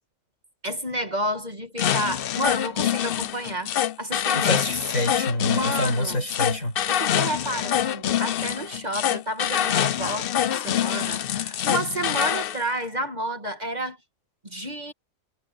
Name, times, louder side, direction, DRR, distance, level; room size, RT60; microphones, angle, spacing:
voice 1, 0.6-3.7 4.0-4.6 5.4-6.2 6.9-14.0 14.4-14.9, right 1 dB, 30° right, 2.0 m, -30 dB
sound 1, 1.8-12.6, left 10 dB, 60° left, 0.6 m, -25 dB
voice 2, 4.3-6.7, left 1 dB, 75° left, 7.2 m, -26 dB
omnidirectional pair, 1.4 m